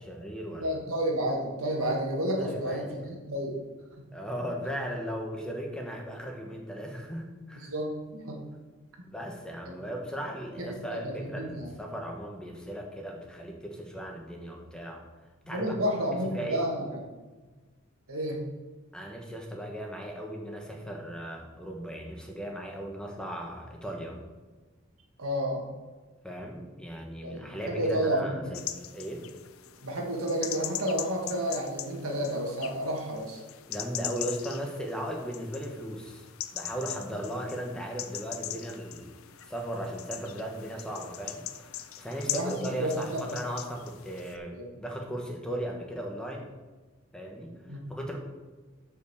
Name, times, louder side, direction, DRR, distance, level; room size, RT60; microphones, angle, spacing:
voice 1, 0.0-0.8 2.4-3.0 4.1-7.7 9.0-15.0 15.5-15.7 16.1-16.7 18.9-24.2 26.2-28.6 28.9-29.2 33.7-36.3 36.5-39.2 39.5-46.5 47.1-48.2, equal, 5° left, 1 dB, 1.2 m, -37 dB
voice 2, 0.6-3.6 7.5-8.4 9.6-9.7 10.6-11.7 15.5-17.0 18.1-18.4 25.2-25.6 27.2-28.4 29.8-33.4 42.2-43.2 44.5-44.8 47.7-47.8, right 1 dB, 90° right, 0 dB, 1.9 m, -31 dB
sound 1, 28.5-44.4, left 12 dB, 80° left, 0.5 m, -41 dB
7.1 x 5.7 x 6.8 m, 1.3 s
head